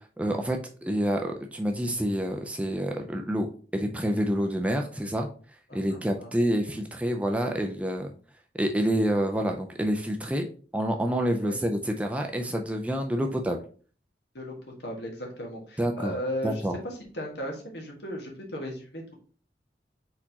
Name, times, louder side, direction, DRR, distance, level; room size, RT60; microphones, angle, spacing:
voice 1, 0.2-3.5 3.7-5.3 5.7-8.1 8.5-13.6 15.8-16.1 16.4-16.8, equal, 10° right, 3 dB, 0.4 m, -28 dB
voice 2, 5.7-6.3 11.4-11.6 13.2-13.3 14.3-19.1, equal, 75° left, 1 dB, 1.4 m, -36 dB
4.3 x 4.3 x 2.8 m, 0.41 s
head